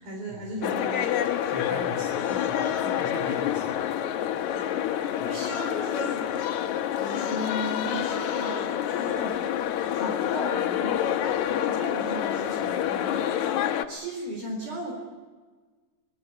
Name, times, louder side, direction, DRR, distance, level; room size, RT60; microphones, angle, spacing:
voice 1, 0.0-1.9 2.3-2.5 2.8-3.1 4.5-4.8 5.2-6.3 7.0-9.5 9.9-14.9, equal, 65° right, 1 dB, 6.0 m, -37 dB
sound 1, 0.6-13.9, left 10 dB, 65° left, 1.9 m, -27 dB
voice 2, 1.5-2.6 3.0-3.8 5.2-5.3, equal, 30° right, 0 dB, 7.9 m, -39 dB
24.0 x 22.0 x 8.6 m, 1.4 s
omnidirectional pair, 4.5 m